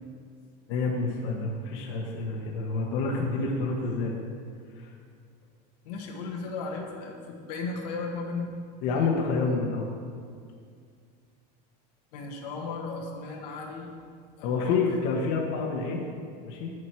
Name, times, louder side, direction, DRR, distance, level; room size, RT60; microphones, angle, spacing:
voice 1, 0.7-4.2 4.8-4.9 8.8-9.9 14.4-16.1 16.4-16.7, left 4 dB, 60° left, -1 dB, 1.4 m, -28 dB
voice 2, 5.8-8.5 12.1-13.9 14.4-14.8, left 4 dB, 85° left, 0 dB, 1.6 m, -35 dB
9.1 x 7.8 x 4.6 m, 2.2 s
supercardioid pair, 135°, 21 cm